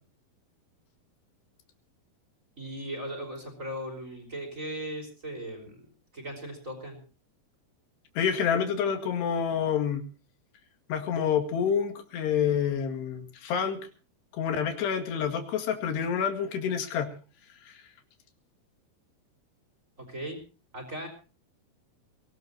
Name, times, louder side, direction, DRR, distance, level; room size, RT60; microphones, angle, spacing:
voice 1, 2.6-5.8 6.1-7.0 20.0-20.4 20.7-21.1, right 1 dB, 20° right, 4 dB, 4.9 m, -38 dB
voice 2, 8.2-10.0 10.9-13.8 14.3-17.1, left 7 dB, 85° left, 6 dB, 4.1 m, -28 dB
24.0 x 18.0 x 2.8 m, 0.36 s
omnidirectional pair, 4.7 m